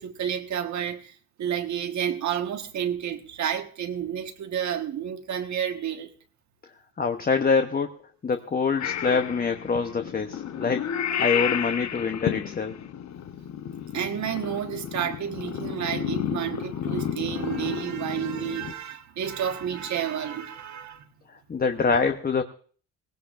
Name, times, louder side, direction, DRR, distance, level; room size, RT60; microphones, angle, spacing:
voice 1, 0.0-6.1 13.9-21.0, right 9 dB, 65° right, 1.5 m, -30 dB
voice 2, 7.0-7.9 8.2-10.9 11.2-12.8 21.5-22.4, left 5 dB, 30° left, 0.9 m, -25 dB
Purr / Meow, 8.8-18.7, left 9 dB, 65° left, 0.9 m, -32 dB
17.5 x 17.5 x 2.5 m
cardioid pair, 90°, 30 cm